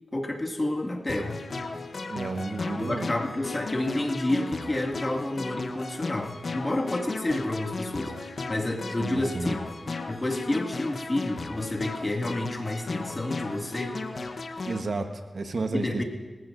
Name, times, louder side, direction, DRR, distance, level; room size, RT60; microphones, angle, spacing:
voice 1, 0.1-1.5 2.6-9.6 9.9-14.0 15.7-16.0, left 1 dB, 35° left, 0 dB, 1.9 m, -30 dB
sound 1, 1.1-14.8, left 3 dB, 70° left, 1.0 m, -36 dB
voice 2, 2.1-3.1 9.0-9.5 14.6-16.0, right 3 dB, 70° right, 6 dB, 1.2 m, -32 dB
28.0 x 15.0 x 2.6 m, 1.3 s
cardioid pair, 45°, 0 cm